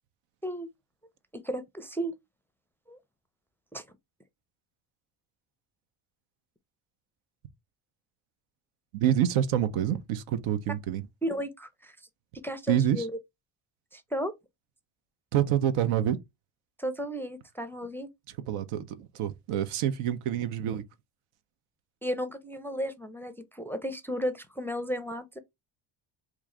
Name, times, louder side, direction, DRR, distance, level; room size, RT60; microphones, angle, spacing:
voice 1, 1.3-2.2 2.9-3.0 3.7-3.8 11.2-12.0 12.4-13.1 13.9-14.3 16.8-18.1 22.0-25.4, equal, 5° left, 0.4 m, -34 dB
voice 2, 8.9-11.0 12.7-13.1 15.3-16.2 18.5-20.8, right 10 dB, 80° right, 0.7 m, -27 dB
3.1 x 2.4 x 3.7 m
supercardioid pair, 80°, 50 cm